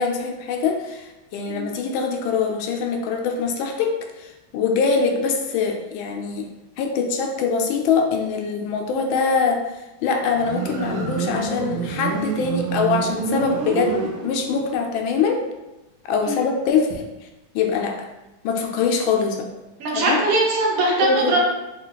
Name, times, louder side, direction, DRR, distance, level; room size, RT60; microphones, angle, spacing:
voice 1, 0.0-6.5 6.8-9.6 10.0-15.4 16.0-17.0 17.5-18.1 18.4-19.5 19.9-20.2 21.0-21.4, left 5 dB, 80° left, 3 dB, 1.4 m, -23 dB
Motorcycle, 10.3-14.7, right 6 dB, 75° right, 1.3 m, -27 dB
voice 2, 19.8-21.4, right 2 dB, 60° right, -4 dB, 1.0 m, -21 dB
4.0 x 2.3 x 3.9 m, 1.0 s
omnidirectional pair, 2.2 m